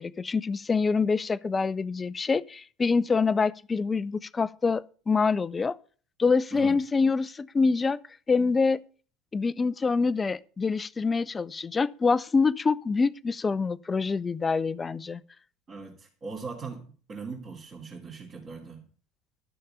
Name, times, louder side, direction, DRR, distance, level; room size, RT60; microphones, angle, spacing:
voice 1, 0.0-5.8 6.2-8.0 8.3-8.8 9.3-15.2, left 4 dB, 20° left, 0.5 m, -26 dB
voice 2, 15.7-18.8, right 4 dB, 35° right, 2.7 m, -40 dB
12.5 x 6.6 x 6.8 m
figure-of-eight pair, 70°, 0 cm